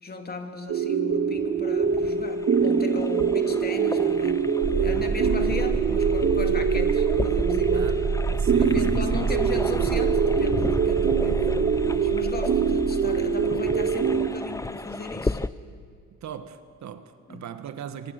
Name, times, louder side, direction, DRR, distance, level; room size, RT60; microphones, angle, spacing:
voice 1, 0.0-8.0 8.6-15.4 17.3-17.5, left 3 dB, 30° left, 2.8 m, -37 dB
sound 1, 0.7-14.3, right 6 dB, 50° right, 1.9 m, -24 dB
sound 2, 1.1-15.5, left 2 dB, 10° left, 0.6 m, -35 dB
sound 3, 4.6-14.2, right 5 dB, 25° right, 0.7 m, -29 dB
voice 2, 8.3-9.6 16.2-18.1, right 8 dB, 65° right, 1.5 m, -38 dB
25.5 x 24.0 x 6.6 m
cardioid pair, 90°, 30 cm